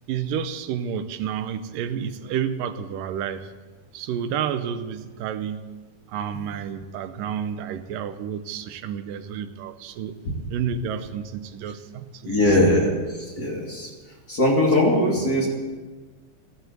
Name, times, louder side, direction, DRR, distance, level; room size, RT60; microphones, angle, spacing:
voice 1, 0.1-3.5 3.9-5.7 6.1-10.2 10.5-12.6 13.4-13.5, right 8 dB, 90° right, 10 dB, 2.5 m, -30 dB
voice 2, 12.2-13.9 14.3-15.5, left 1 dB, 30° left, -2 dB, 2.7 m, -21 dB
15.0 x 10.5 x 8.1 m, 1.3 s
omnidirectional pair, 3.8 m